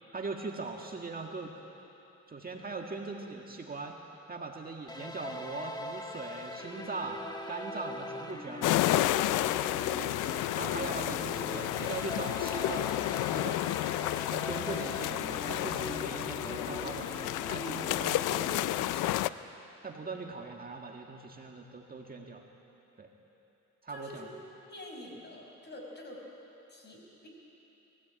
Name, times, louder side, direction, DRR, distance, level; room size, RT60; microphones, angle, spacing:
voice 1, 0.1-1.5 2.3-4.0 4.3-7.2 7.5-8.7 10.0-10.2 10.5-13.6 14.3-17.2 17.5-19.1 19.8-22.4 23.0-23.1 23.8-24.3, right 3 dB, 30° right, 1 dB, 1.8 m, -40 dB
sound 1, 4.9-18.6, left 1 dB, 15° left, 1.7 m, -41 dB
sound 2, 8.6-19.3, left 15 dB, 90° left, 0.5 m, -31 dB
voice 2, 23.9-24.3 24.7-26.2 26.7-27.3, left 1 dB, 35° left, 0 dB, 5.5 m, -46 dB
21.5 x 16.5 x 8.9 m, 3.0 s
cardioid pair, 90°, 30 cm